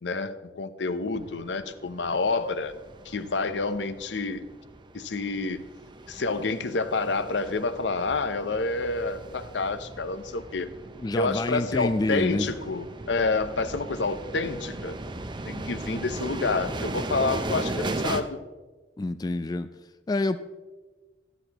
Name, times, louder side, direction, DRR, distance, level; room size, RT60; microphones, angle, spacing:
voice 1, 0.0-2.7 3.0-4.4 4.9-5.6 6.1-10.7 11.1-14.9 15.4-18.4, left 3 dB, 80° left, 11 dB, 0.7 m, -28 dB
sound 1, 1.1-18.2, right 2 dB, 25° right, 0.6 m, -37 dB
voice 2, 11.0-12.5 19.0-19.7 20.1-20.4, left 2 dB, 20° left, 11 dB, 0.3 m, -27 dB
13.5 x 12.5 x 3.0 m, 1.3 s
head